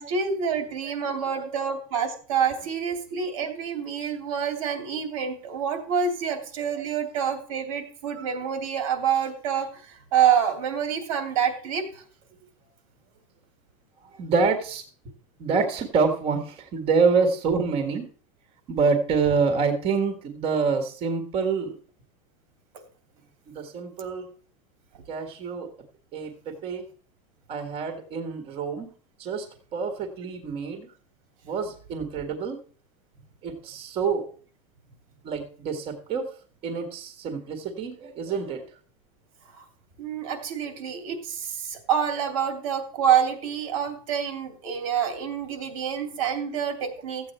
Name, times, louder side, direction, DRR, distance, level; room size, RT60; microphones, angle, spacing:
voice 1, 0.0-12.0 39.5-39.6 40.0-47.3, right 8 dB, 80° right, 7 dB, 2.9 m, -27 dB
voice 2, 14.2-14.8 15.4-18.1 18.7-21.7 23.5-24.3 25.1-25.7 26.1-26.8 27.5-28.9 29.2-29.5 29.7-30.9 31.4-32.6 33.4-34.3 35.2-36.3 36.6-38.6, right 5 dB, 35° right, 6 dB, 1.8 m, -26 dB
14.5 x 8.3 x 4.4 m, 0.43 s
supercardioid pair, 160°, 17 cm